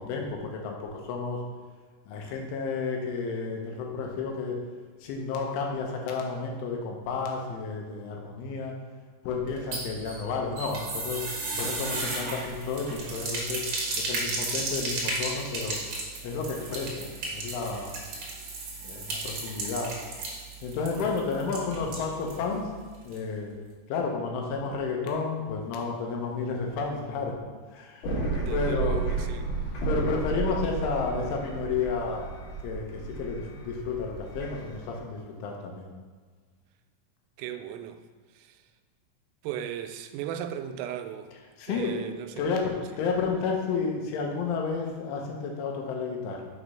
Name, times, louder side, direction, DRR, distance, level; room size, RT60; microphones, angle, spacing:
voice 1, 0.0-1.4 2.1-4.6 5.0-8.7 9.2-11.2 11.5-13.6 14.0-15.8 16.2-17.9 18.8-19.9 20.6-22.7 23.0-23.5 23.9-27.4 27.7-28.0 28.5-28.9 29.8-32.3 32.6-35.9 41.6-42.0 42.4-46.4, left 4 dB, 80° left, 0 dB, 3.4 m, -31 dB
sound 1, 9.5-22.4 22.7-22.8 23.1-23.2, right 2 dB, 70° right, 1.7 m, -34 dB
voice 2, 21.0-21.3 28.2-29.5 37.4-38.0 38.3-38.6 39.4-41.3 41.7-42.5 43.0-43.1, right 10 dB, 85° right, 8 dB, 3.1 m, -37 dB
sound 2, 28.0-35.0, right 3 dB, 45° left, 3.2 m, -32 dB
7.4 x 5.0 x 5.6 m, 1.5 s
omnidirectional pair, 5.8 m